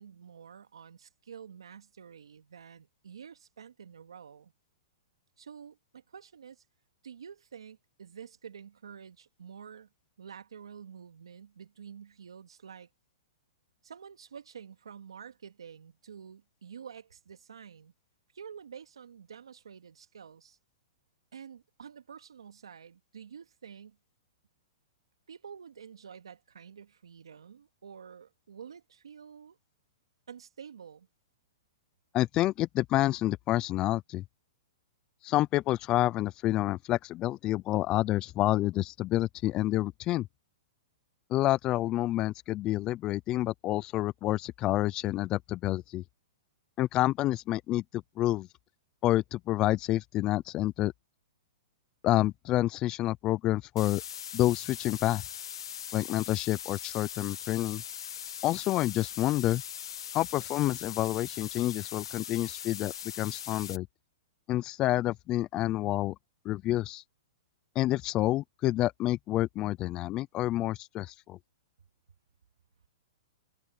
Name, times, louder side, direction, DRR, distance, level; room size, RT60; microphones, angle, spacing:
voice 1, 0.0-4.5 5.4-6.6 7.0-9.9 10.2-12.9 13.8-17.9 18.3-20.6 21.3-24.0 25.3-29.6 30.3-31.1, right 7 dB, 90° right, 2.6 m, -49 dB
voice 2, 32.1-34.2 35.2-40.3 41.3-46.0 46.8-48.5 49.0-50.9 52.0-54.0 54.3-55.2 55.9-57.8 58.4-59.6 60.1-63.9 64.5-66.1 66.4-67.0 67.8-71.4, left 15 dB, 30° left, 0.5 m, -28 dB
sound 1, 53.8-63.8, left 9 dB, 80° left, 2.1 m, -40 dB
hypercardioid pair, 135°, 3 cm